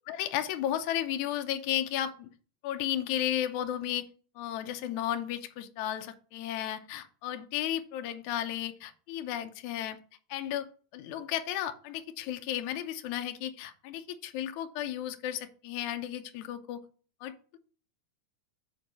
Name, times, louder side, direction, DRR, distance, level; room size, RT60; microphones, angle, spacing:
voice 1, 0.1-2.3 2.6-4.1 4.4-10.0 10.3-10.7 10.9-16.8 17.2-17.6, left 11 dB, 75° left, 8 dB, 2.0 m, -34 dB
7.7 x 4.5 x 5.3 m, 0.40 s
omnidirectional pair, 3.8 m